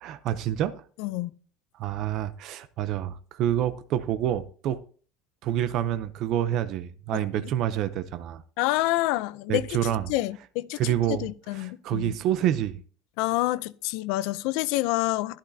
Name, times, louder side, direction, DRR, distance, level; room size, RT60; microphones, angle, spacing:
voice 1, 0.0-0.8 1.8-4.8 5.4-8.4 9.5-10.0 10.8-11.3 11.6-12.8, right 11 dB, 45° right, 0.6 m, -27 dB
voice 2, 1.0-1.3 7.1-7.2 8.6-12.2 13.2-15.4, left 17 dB, 70° left, 0.4 m, -28 dB
11.5 x 11.5 x 2.7 m
cardioid pair, 160°, 0 cm